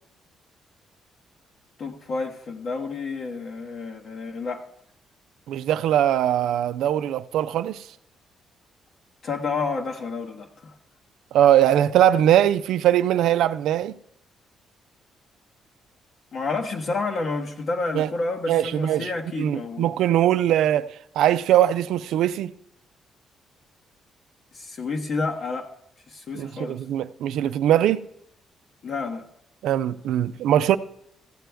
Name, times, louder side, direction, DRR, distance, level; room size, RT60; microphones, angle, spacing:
voice 1, 1.8-4.6 9.2-10.7 16.3-19.9 24.5-25.7 26.1-26.8 28.8-29.2, left 3 dB, 55° left, 1.1 m, -30 dB
voice 2, 5.5-7.8 11.3-14.0 17.9-18.1 18.5-19.1 19.4-22.5 26.3-28.0 29.6-30.8, right 11 dB, 85° right, 0.4 m, -21 dB
14.5 x 7.6 x 3.4 m
cardioid pair, 90°, 0 cm